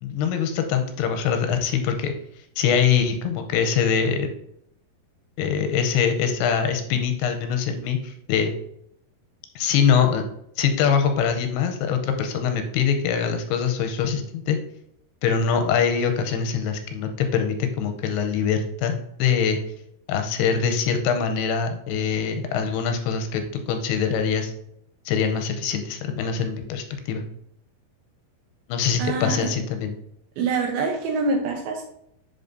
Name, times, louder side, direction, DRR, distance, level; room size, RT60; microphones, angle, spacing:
voice 1, 0.0-2.1 2.6-4.3 5.4-8.5 9.6-10.2 10.6-14.6 15.2-19.6 20.1-24.5 25.1-27.2 28.7-29.9, left 7 dB, 85° left, 6 dB, 2.6 m, -23 dB
voice 2, 29.0-29.5 30.4-31.9, right 4 dB, 75° right, 1 dB, 2.4 m, -25 dB
10.5 x 4.0 x 2.6 m, 0.74 s
omnidirectional pair, 4.8 m